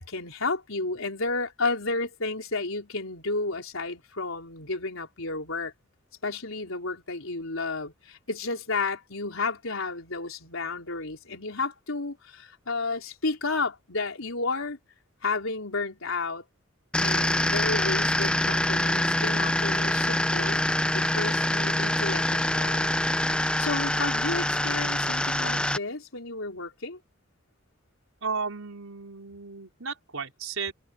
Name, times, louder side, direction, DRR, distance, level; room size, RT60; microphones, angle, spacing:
voice 1, 0.0-5.7 6.2-14.8 15.2-16.4 17.0-20.6 20.9-23.0 23.3-27.0, left 3 dB, 75° left, 4.0 m, -32 dB
sound 1, 16.9-25.8, left 1 dB, 5° left, 0.5 m, -25 dB
voice 2, 28.2-30.7, right 5 dB, 90° right, 4.7 m, -34 dB
head